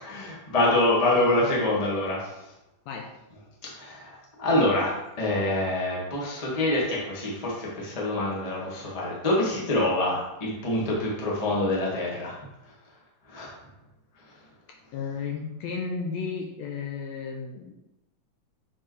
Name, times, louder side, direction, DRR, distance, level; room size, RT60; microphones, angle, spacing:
voice 1, 0.0-2.3 3.7-12.3 13.3-13.5, left 1 dB, 25° left, -4 dB, 0.9 m, -26 dB
voice 2, 14.9-17.7, left 5 dB, 75° left, 2 dB, 1.7 m, -33 dB
7.4 x 4.6 x 3.2 m, 0.89 s
omnidirectional pair, 3.4 m